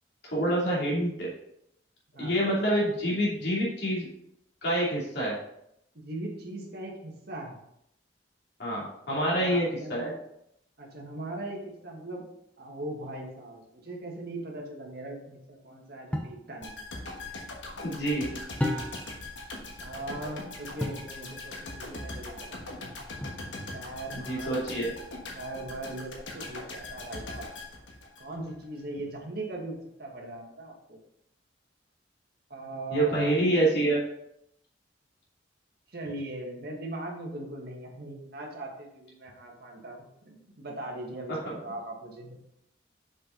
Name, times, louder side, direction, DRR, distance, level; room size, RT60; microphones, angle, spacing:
voice 1, 0.2-1.3 2.2-4.1 4.6-5.4 8.6-10.1 17.8-18.3 24.3-24.9 32.9-34.0 41.4-41.6, right 1 dB, 60° left, -5 dB, 2.6 m, -27 dB
voice 2, 2.1-2.5 6.0-7.6 9.1-10.1 10.8-12.2 12.6-16.8 19.8-22.8 23.7-24.5 25.3-27.5 28.2-31.0 32.5-33.4 35.9-40.0 40.2-42.4, right 2 dB, 55° right, 0 dB, 1.7 m, -39 dB
sound 1, 16.1-16.4 18.6-19.2 20.8-21.1 23.2-23.7, left 1 dB, 5° left, 0.7 m, -32 dB
sound 2, 16.6-28.6 28.9-29.1, left 2 dB, 75° left, 1.4 m, -41 dB
6.5 x 5.5 x 3.9 m, 0.76 s
head